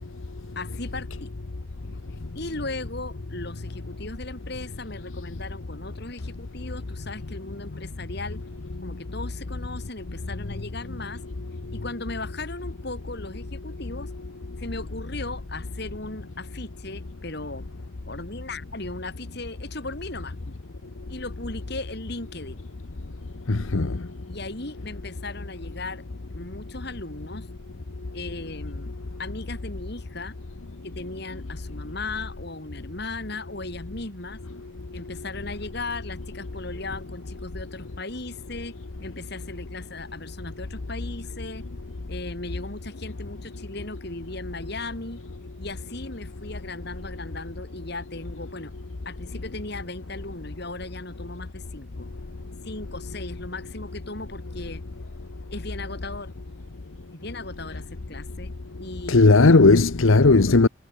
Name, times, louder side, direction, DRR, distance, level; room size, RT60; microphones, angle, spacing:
voice 1, 0.6-1.3 2.4-8.4 8.8-11.2 11.7-14.1 14.6-17.6 18.1-20.6 21.1-22.7 24.3-26.0 26.3-27.5 28.1-28.9 29.2-30.4 30.8-34.4 34.9-41.6 42.1-45.2 45.6-48.7 49.1-52.1 52.6-54.8 55.5-56.3 57.1-58.5 58.8-59.3, left 2 dB, 50° left, 3.7 m, -37 dB
voice 2, 23.5-24.0 59.1-60.7, left 3 dB, 75° left, 0.9 m, -16 dB
head